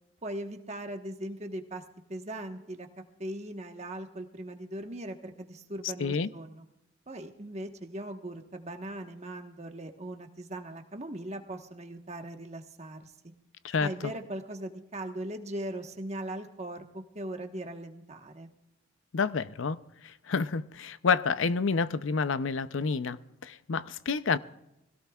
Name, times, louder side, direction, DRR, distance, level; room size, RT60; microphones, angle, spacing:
voice 1, 0.2-1.8 2.1-2.9 3.2-6.6 7.1-13.1 13.8-18.5, right 1 dB, 35° right, 1.2 m, -39 dB
voice 2, 6.0-6.3 13.6-13.9 19.1-24.4, left 5 dB, 75° left, 0.6 m, -29 dB
24.5 x 17.0 x 2.4 m
head